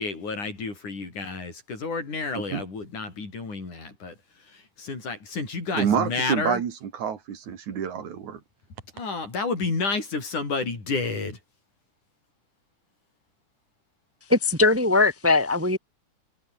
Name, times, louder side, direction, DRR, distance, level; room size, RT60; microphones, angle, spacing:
voice 1, 0.0-4.1 4.8-6.6 8.9-11.4, left 4 dB, 70° left, 8.0 m, -30 dB
voice 2, 5.7-8.4, right 8 dB, 65° right, 3.6 m, -28 dB
voice 3, 14.3-15.8, left 3 dB, 5° right, 2.2 m, -20 dB
omnidirectional pair, 3.6 m